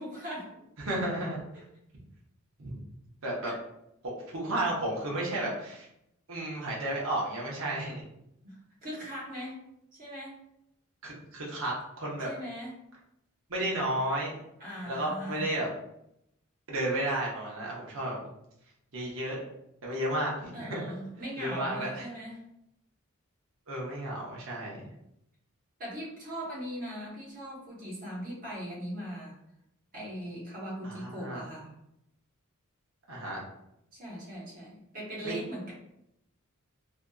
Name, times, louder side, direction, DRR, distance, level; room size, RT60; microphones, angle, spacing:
voice 1, 0.0-0.6 3.5-3.6 8.4-9.6 10.0-10.3 12.2-12.7 14.6-15.5 20.5-22.4 25.8-29.4 29.9-31.7 33.9-35.7, equal, 40° right, -5 dB, 1.0 m, -39 dB
voice 2, 0.8-1.4 2.6-2.8 3.2-3.5 4.0-5.9 6.3-8.0 11.0-12.3 13.5-14.3 14.8-15.7 16.7-18.2 18.9-19.4 19.8-20.8 21.4-22.1 23.7-24.9 30.8-31.4 33.1-33.4 35.2-35.4, right 1 dB, 70° right, -4 dB, 0.8 m, -32 dB
2.7 x 2.4 x 2.3 m, 0.81 s
head